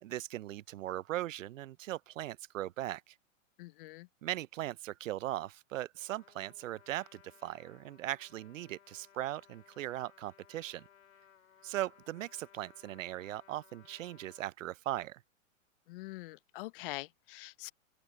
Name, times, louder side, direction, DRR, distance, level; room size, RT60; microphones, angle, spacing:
voice 1, 0.0-3.1 4.2-10.8 11.6-15.2, right 14 dB, 70° right, 0.7 m, -39 dB
voice 2, 3.6-4.1 15.9-17.7, left 21 dB, 45° left, 0.6 m, -44 dB
Trumpet, 5.9-14.5, left 9 dB, 80° left, 4.3 m, -62 dB
open air
hypercardioid pair, 130°, 40 cm